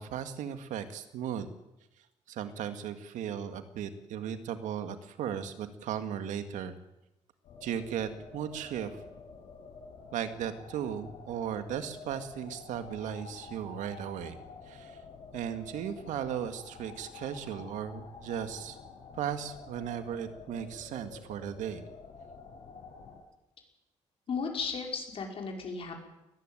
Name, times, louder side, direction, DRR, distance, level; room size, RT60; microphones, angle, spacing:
voice 1, 0.0-1.5 2.3-6.7 7.6-9.0 10.1-14.4 14.7-14.9 15.3-18.8 19.2-21.8, right 9 dB, 90° right, 9 dB, 2.0 m, -36 dB
sound 1, 7.4-23.2, left 5 dB, 75° left, 6.0 m, -49 dB
voice 2, 24.3-25.9, left 5 dB, 50° left, 2 dB, 5.3 m, -35 dB
21.5 x 15.0 x 9.2 m, 0.93 s
cardioid pair, 135°, 13 cm